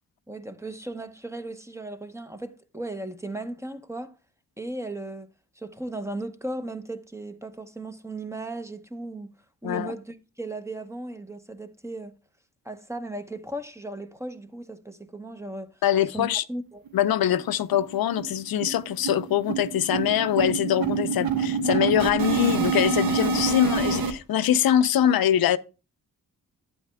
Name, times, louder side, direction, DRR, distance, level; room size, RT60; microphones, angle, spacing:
voice 1, 0.3-4.1 4.6-5.3 5.6-9.3 9.6-12.1 12.6-15.7 16.1-16.8, right 2 dB, 10° right, 0.8 m, -36 dB
voice 2, 15.8-16.4 16.9-25.6, left 10 dB, 85° left, 0.6 m, -23 dB
sound 1, 16.9-17.0 17.3-17.4 17.7-17.9 18.2-24.1, right 5 dB, 75° right, 1.2 m, -27 dB
11.5 x 8.6 x 2.2 m
cardioid pair, 95°, 35 cm